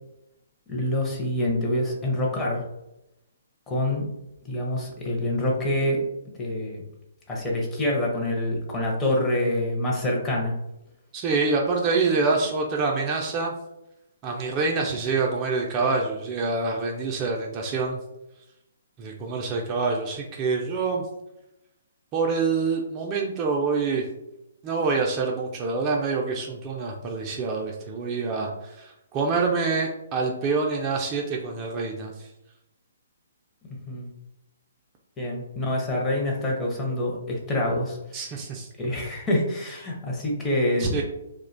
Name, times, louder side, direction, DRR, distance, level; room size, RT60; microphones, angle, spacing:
voice 1, 0.7-2.6 3.7-4.1 4.4-6.0 6.4-6.8 7.3-10.5 33.7-34.1 35.2-38.4 38.8-41.0, left 1 dB, 15° left, -2 dB, 0.6 m, -26 dB
voice 2, 11.1-13.5 14.2-18.0 19.0-21.0 22.1-24.0 24.6-28.5 28.8-32.3 38.1-38.7 40.8-41.0, right 4 dB, 30° right, 0 dB, 0.3 m, -26 dB
2.4 x 2.1 x 2.5 m, 0.89 s
hypercardioid pair, 135°, 0 cm